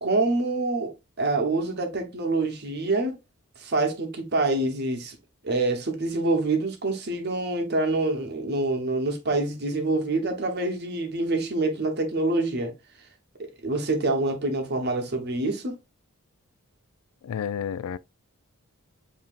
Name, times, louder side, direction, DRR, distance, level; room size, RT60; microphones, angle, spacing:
voice 1, 0.0-3.2 3.6-5.1 5.4-12.7 13.6-15.8, right 2 dB, 50° right, 0.9 m, -26 dB
voice 2, 17.2-18.0, left 8 dB, 80° left, 0.3 m, -30 dB
7.3 x 2.7 x 2.4 m
head